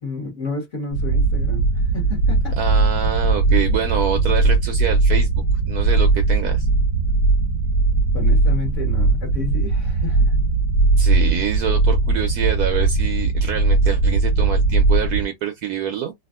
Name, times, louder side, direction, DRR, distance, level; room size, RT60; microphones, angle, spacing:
voice 1, 0.0-2.6 8.1-10.4, left 3 dB, 45° left, 1.5 m, -31 dB
sound 1, 0.9-15.2, right 3 dB, 65° left, 1.7 m, -19 dB
voice 2, 2.6-6.7 11.0-16.1, right 8 dB, 70° right, 0.9 m, -26 dB
3.4 x 2.3 x 2.3 m
omnidirectional pair, 2.0 m